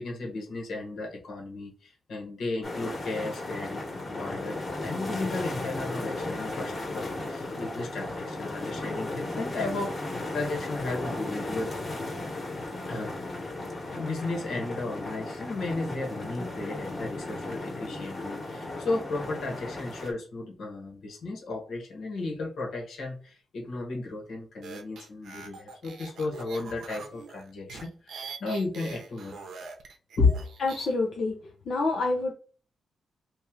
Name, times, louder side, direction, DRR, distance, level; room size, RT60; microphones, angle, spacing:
voice 1, 0.0-11.7 12.9-13.5 13.9-29.5 30.2-30.4, left 3 dB, 85° left, -1 dB, 1.4 m, -34 dB
sound 1, 2.6-20.1, left 2 dB, 40° left, 1.4 m, -35 dB
sound 2, 24.6-30.9, right 4 dB, 85° right, 0.6 m, -43 dB
voice 2, 30.6-31.3 31.7-32.3, left 3 dB, 70° left, 0 dB, 0.6 m, -27 dB
3.1 x 2.6 x 3.7 m, 0.39 s
cardioid pair, 85°, 0 cm